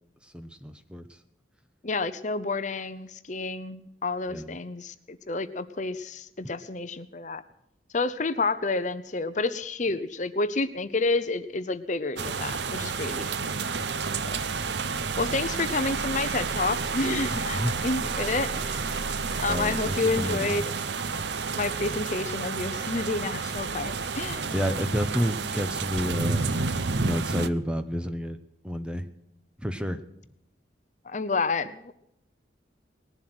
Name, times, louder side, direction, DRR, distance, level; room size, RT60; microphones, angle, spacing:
voice 1, 0.3-1.1 4.3-4.6 17.3-17.8 18.0-18.2 19.5-20.7 24.5-26.6 27.0-28.4 28.6-29.0 29.6-30.0, equal, 5° right, 9 dB, 0.9 m, -30 dB
voice 2, 1.8-7.4 7.9-13.3 14.3-14.5 15.2-19.1 19.4-20.7 21.6-24.5 31.1-31.9, left 3 dB, 40° left, 12 dB, 0.8 m, -29 dB
sound 1, 12.2-27.5, right 4 dB, 65° right, 0.7 m, -30 dB
19.5 x 11.5 x 6.2 m, 0.81 s
head